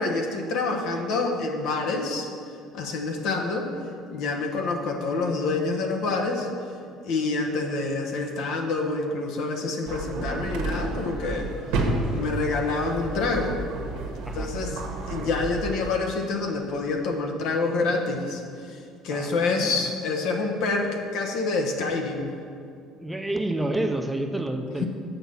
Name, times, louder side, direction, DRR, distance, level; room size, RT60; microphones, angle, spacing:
voice 1, 0.0-2.3 2.7-3.7 4.1-6.5 7.0-11.5 12.1-13.6 14.3-14.8 15.1-18.4 18.7-18.8 19.0-22.3 24.8-24.9, left 3 dB, 70° left, 1 dB, 1.1 m, -27 dB
sound 1, 9.9-15.9, right 2 dB, 85° right, 1.3 m, -31 dB
voice 2, 19.1-19.9 23.0-24.8, right 1 dB, 10° right, 4 dB, 0.7 m, -29 dB
7.1 x 5.7 x 5.6 m, 2.4 s
supercardioid pair, 85°, 0 cm